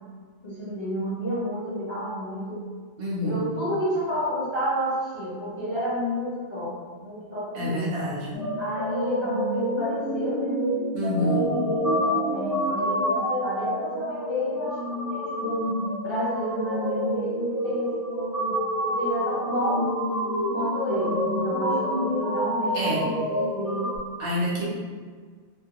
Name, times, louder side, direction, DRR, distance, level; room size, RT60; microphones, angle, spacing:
voice 1, 0.4-2.6 3.2-7.9 8.6-10.7 11.2-12.0 12.3-15.7 16.0-18.6 18.9-19.8 20.5-23.9, equal, 35° left, -10 dB, 0.5 m, -31 dB
voice 2, 3.0-3.5 7.5-8.3 10.9-11.6 22.7-23.1 24.2-24.7, equal, 65° right, -5 dB, 0.8 m, -27 dB
sound 1, 8.3-24.0, equal, 30° right, 0.3 m, -27 dB
2.3 x 2.2 x 2.8 m, 1.5 s
omnidirectional pair, 1.2 m